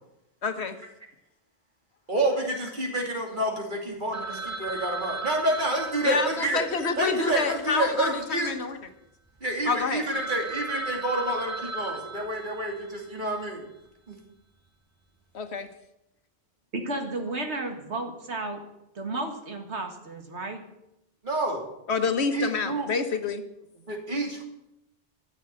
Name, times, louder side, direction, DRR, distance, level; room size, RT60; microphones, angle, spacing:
voice 1, 0.4-0.8 6.0-8.8 9.6-10.0 15.3-15.7 21.9-23.4, left 4 dB, 70° left, 8 dB, 1.4 m, -28 dB
voice 2, 2.1-6.6 7.0-8.5 9.4-13.6 14.1-14.2 21.2-21.6 22.3-22.9 23.8-24.4, right 1 dB, 45° right, 1 dB, 2.8 m, -28 dB
Telephone, 4.1-8.5 8.7-8.8 9.4-9.5 9.8-9.9 10.1-13.1, right 3 dB, 20° right, 0.6 m, -37 dB
voice 3, 16.7-18.6 19.0-20.6, right 2 dB, 75° right, 4 dB, 2.1 m, -33 dB
13.0 x 7.4 x 9.0 m, 0.88 s
omnidirectional pair, 1.2 m